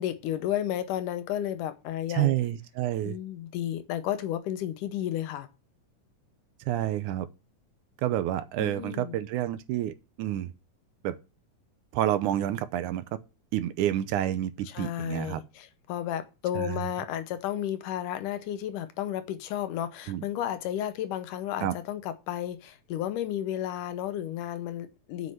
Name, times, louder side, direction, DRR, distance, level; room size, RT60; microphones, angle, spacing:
voice 1, 0.0-2.3 3.0-5.5 8.6-9.2 14.7-25.3, left 11 dB, 80° left, 2.3 m, -32 dB
voice 2, 2.1-3.2 6.7-7.3 8.0-10.5 11.0-11.2 11.9-13.1 13.5-15.4 16.6-16.7 20.1-20.3 21.6-21.8, right 13 dB, 80° right, 2.1 m, -29 dB
7.9 x 5.5 x 7.7 m
omnidirectional pair, 3.8 m